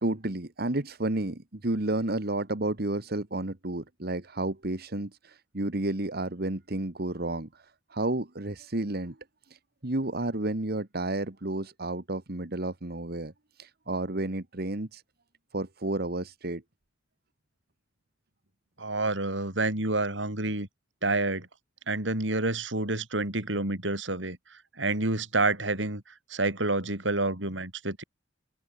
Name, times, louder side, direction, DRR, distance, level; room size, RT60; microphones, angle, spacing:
voice 1, 0.0-9.2 9.5-15.0 15.5-16.6, right 2 dB, 55° right, 1.9 m, -31 dB
voice 2, 18.8-20.7 21.0-21.5 21.9-24.4 24.8-26.0 26.3-28.0, right 2 dB, 85° right, 5.5 m, -28 dB
open air
head